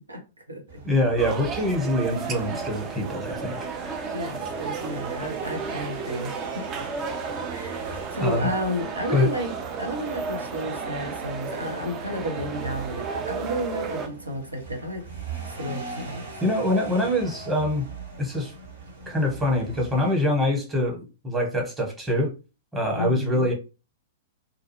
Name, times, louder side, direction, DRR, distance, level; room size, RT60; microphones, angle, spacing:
sound 1, 0.7-20.3, right 4 dB, 60° right, 1.0 m, -41 dB
voice 1, 0.8-4.0 8.2-8.5 9.1-9.3 16.4-17.9 18.2-18.5 19.1-22.3 22.7-23.5, left 1 dB, 10° right, 1.0 m, -24 dB
sound 2, 1.2-14.1, right 5 dB, 25° right, 0.4 m, -33 dB
voice 2, 4.1-6.6 7.5-9.5 9.8-15.0 15.4-16.4 23.0-23.5, equal, 85° right, 0.8 m, -32 dB
2.5 x 2.2 x 2.9 m
figure-of-eight pair, 105°, 0 cm